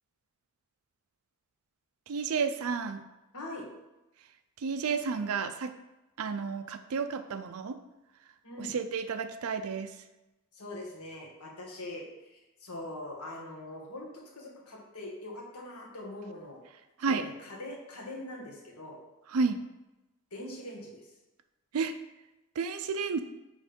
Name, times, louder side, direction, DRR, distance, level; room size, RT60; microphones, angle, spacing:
voice 1, 2.1-3.0 4.6-5.7 6.2-7.8 8.6-9.9 17.0-17.3 19.3-19.6 21.7-21.9 22.6-23.2, right 5 dB, 70° right, 9 dB, 0.4 m, -31 dB
voice 2, 3.3-3.7 8.4-8.8 10.5-16.6 17.0-19.0 20.3-21.1, left 1 dB, 85° left, -1 dB, 1.6 m, -42 dB
6.4 x 3.6 x 5.2 m, 1.0 s
head